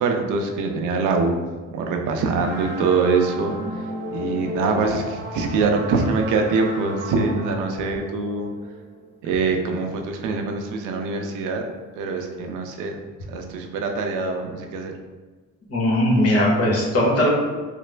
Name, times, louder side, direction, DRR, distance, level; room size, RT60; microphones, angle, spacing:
voice 1, 0.0-1.4 1.7-3.8 4.1-8.5 9.2-13.0 13.3-14.9, right 4 dB, 90° right, 3 dB, 0.5 m, -24 dB
sound 1, 2.4-9.3, left 1 dB, 40° right, 0.7 m, -35 dB
voice 2, 15.7-17.3, left 1 dB, 50° left, -3 dB, 1.0 m, -19 dB
3.2 x 2.0 x 3.2 m, 1.4 s
cardioid pair, 90°, 30 cm